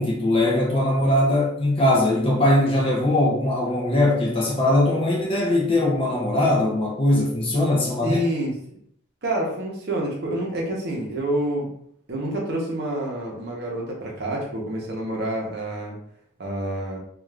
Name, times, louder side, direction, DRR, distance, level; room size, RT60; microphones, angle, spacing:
voice 1, 0.0-8.2, left 1 dB, 25° left, -1 dB, 0.5 m, -21 dB
voice 2, 8.0-8.5 9.2-11.7 12.1-16.0 16.4-17.0, right 1 dB, 50° right, -2 dB, 0.7 m, -28 dB
2.4 x 2.3 x 3.2 m, 0.66 s
head